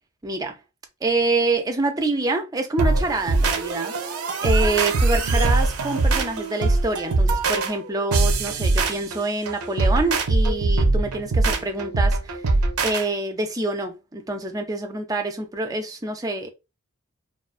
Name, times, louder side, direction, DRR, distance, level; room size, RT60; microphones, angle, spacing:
voice 1, 0.2-0.6 1.0-3.9 4.4-12.3 12.8-16.5, right 2 dB, 15° right, 0.4 m, -26 dB
sound 1, 2.8-13.0, right 3 dB, 85° right, 0.5 m, -22 dB
2.4 x 2.3 x 2.4 m
head